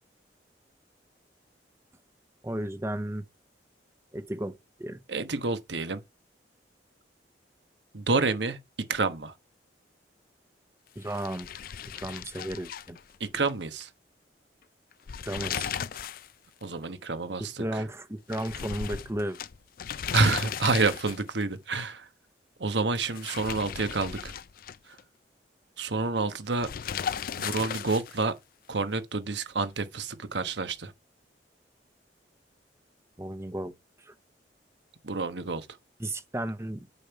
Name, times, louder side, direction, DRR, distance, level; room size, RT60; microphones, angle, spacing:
voice 1, 2.4-3.2 4.1-5.0 11.0-11.5 12.0-13.0 15.2-15.8 17.4-19.4 33.2-33.7 34.1-34.2 36.0-36.9, right 1 dB, 15° right, 0.8 m, -34 dB
voice 2, 5.1-6.0 7.9-8.6 8.9-9.3 13.2-13.9 16.6-17.8 20.1-22.1 22.6-24.3 25.8-26.7 27.4-28.3 28.7-30.9 35.0-35.7, right 3 dB, 80° right, 1.2 m, -28 dB
sound 1, 11.0-13.5 13.8-13.9 14.9-16.3 16.6-16.7 18.3-21.4 23.0-25.0 26.6-28.3, left 8 dB, 55° left, 0.4 m, -36 dB
8.3 x 5.3 x 5.8 m
head